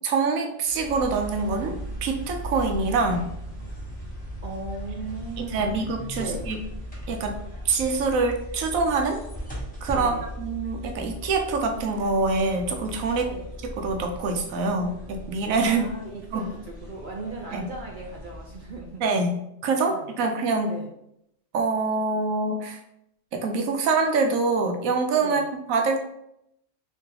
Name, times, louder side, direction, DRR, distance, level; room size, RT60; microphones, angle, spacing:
voice 1, 0.0-3.3 5.4-6.6 7.1-7.4 7.6-9.2 9.8-13.3 13.6-15.9 16.3-16.5 17.5-17.7 19.0-20.7 21.5-22.8 23.3-26.1, right 3 dB, 90° right, 4 dB, 1.0 m, -25 dB
sound 1, 0.6-19.1, equal, 5° left, 1.1 m, -38 dB
voice 2, 4.4-5.8 6.1-6.5 9.9-10.3 13.3-13.5 15.6-19.0 19.8-20.3 20.7-20.9 25.2-25.5, right 3 dB, 60° right, 0 dB, 0.5 m, -37 dB
3.7 x 3.2 x 2.8 m, 0.79 s
omnidirectional pair, 1.4 m